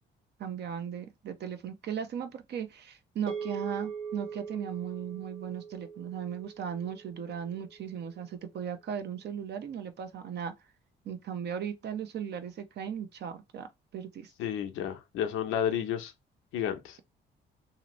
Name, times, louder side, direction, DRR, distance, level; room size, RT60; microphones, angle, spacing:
voice 1, 0.4-10.5 11.0-14.3, right 8 dB, 60° right, 0.7 m, -37 dB
sound 1, 3.3-7.8, right 6 dB, 90° right, 1.2 m, -41 dB
voice 2, 14.4-16.1 16.5-17.0, left 9 dB, 90° left, 0.7 m, -31 dB
2.8 x 2.6 x 3.0 m
cardioid pair, 90°, 20 cm